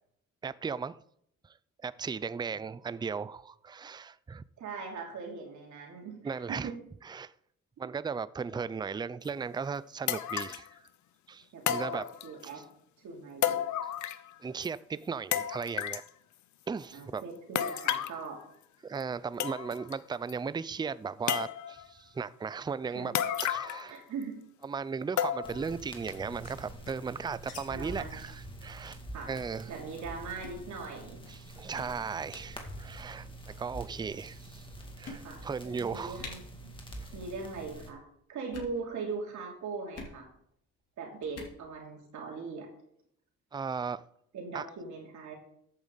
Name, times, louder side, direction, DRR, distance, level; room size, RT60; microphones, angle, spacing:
voice 1, 0.4-1.0 1.8-4.4 6.2-6.7 7.0-7.3 7.8-10.7 11.3-12.0 14.4-16.0 16.7-17.2 17.5-17.6 18.8-23.1 23.4-23.9 24.6-29.0 29.3-29.7 31.3-34.7 35.0-36.2 37.0-37.1 43.5-44.0 44.5-44.7, right 5 dB, 15° right, 0.4 m, -36 dB
voice 2, 4.6-6.8 11.5-12.6 13.0-13.6 16.9-18.4 22.8-23.2 23.9-24.3 27.7-28.2 29.1-29.3 29.7-31.2 35.1-36.7 37.1-38.0 38.3-40.3 41.0-42.7 44.3-45.3, right 4 dB, 70° right, 2.9 m, -40 dB
sound 1, 9.3-9.4 10.1-10.7 11.7-12.5 13.4-14.3 14.6-14.7 15.3-16.1 17.6-18.2 19.0-19.1 19.4-19.9 20.3-20.4 21.3-21.9 23.1-23.9 24.2-24.3 25.2-25.7 26.1-26.2 26.9-27.0, left 10 dB, 70° left, 0.8 m, -32 dB
sound 2, 25.4-37.9, right 1 dB, 15° left, 2.3 m, -46 dB
sound 3, 26.4-27.6 27.9-28.0 28.2-28.4 28.8-28.9 29.3-29.6 30.3-30.6 31.2-31.4 31.7-31.9 32.8-33.2 34.0-34.1 34.5-34.6 35.0-35.6 35.9-36.0 36.2-36.3 37.0-37.3 37.5-37.9 38.4-38.8 39.9-40.2 41.2-41.6, left 3 dB, 55° left, 3.3 m, -46 dB
14.0 x 8.6 x 4.0 m
cardioid pair, 90°, 30 cm